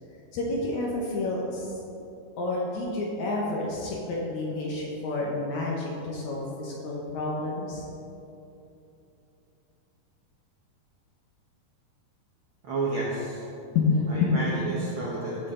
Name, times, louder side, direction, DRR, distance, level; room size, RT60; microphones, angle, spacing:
voice 1, 0.3-1.8 2.4-7.9 13.7-14.3, left 3 dB, 70° left, -3 dB, 2.0 m, -29 dB
voice 2, 12.6-13.4 14.1-15.5, right 2 dB, 75° right, -5 dB, 1.1 m, -31 dB
13.5 x 5.0 x 3.7 m, 2.8 s
omnidirectional pair, 3.9 m